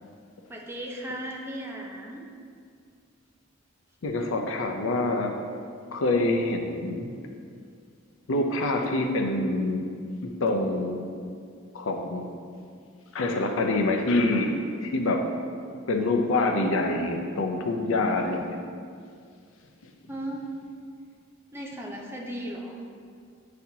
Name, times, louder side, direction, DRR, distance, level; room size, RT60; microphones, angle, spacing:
voice 1, 0.5-2.3 20.1-20.4 21.5-22.8, right 1 dB, 10° right, 0 dB, 0.6 m, -36 dB
voice 2, 4.0-5.3 5.9-7.1 8.3-9.8 10.2-11.1 11.7-12.3 13.1-14.5 14.8-15.2 15.9-18.6, left 2 dB, 75° left, 4 dB, 0.6 m, -26 dB
8.3 x 4.2 x 2.8 m, 2.2 s
head